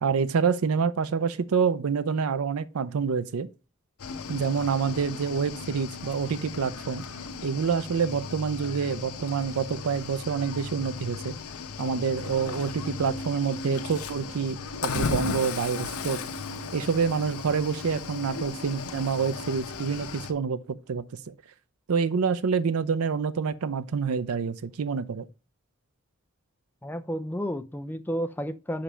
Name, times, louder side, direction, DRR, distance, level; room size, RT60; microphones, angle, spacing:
voice 1, 0.0-3.5 4.3-7.0 7.4-11.3 11.8-16.2 16.7-20.6 20.9-21.3 21.9-25.3, right 6 dB, 80° right, 0.5 m, -27 dB
Cricket / Waves surf, 4.0-20.3, left 4 dB, 85° left, 0.9 m, -36 dB
voice 2, 26.8-28.8, equal, 10° left, 0.4 m, -31 dB
5.1 x 5.0 x 5.5 m
head